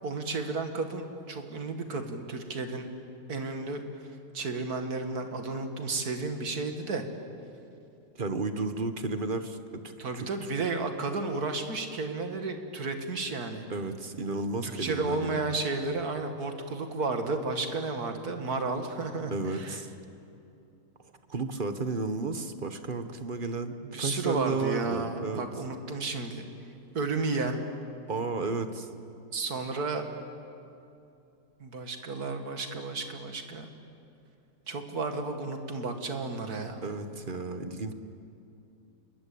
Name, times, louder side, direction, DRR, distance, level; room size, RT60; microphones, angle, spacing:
voice 1, 0.0-2.9 3.3-4.0 4.3-7.0 10.0-13.7 14.6-19.8 23.8-26.5 26.9-27.6 29.3-30.1 31.6-33.7 34.7-36.9, right 3 dB, 85° right, 6 dB, 2.5 m, -32 dB
voice 2, 8.1-9.6 10.1-10.3 13.7-15.6 19.3-19.9 21.3-25.4 28.1-28.9 36.8-37.9, right 3 dB, 35° right, 9 dB, 1.3 m, -33 dB
27.5 x 22.0 x 8.6 m, 2.7 s
omnidirectional pair, 1.6 m